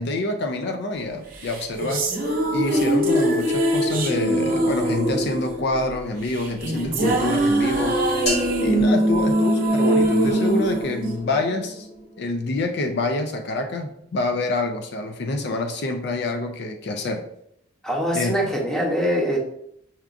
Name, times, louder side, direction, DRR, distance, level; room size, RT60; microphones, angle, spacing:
voice 1, 0.0-2.0 2.5-8.0 8.6-11.9 12.2-17.2 18.1-18.3, left 2 dB, 60° left, 5 dB, 0.4 m, -27 dB
sound 1, 1.4-11.8, right 1 dB, 45° right, 0.8 m, -22 dB
sound 2, 8.3-10.2, left 1 dB, 35° left, 0.9 m, -32 dB
voice 2, 17.8-19.4, equal, 5° left, -2 dB, 0.7 m, -23 dB
5.7 x 2.3 x 2.5 m, 0.73 s
head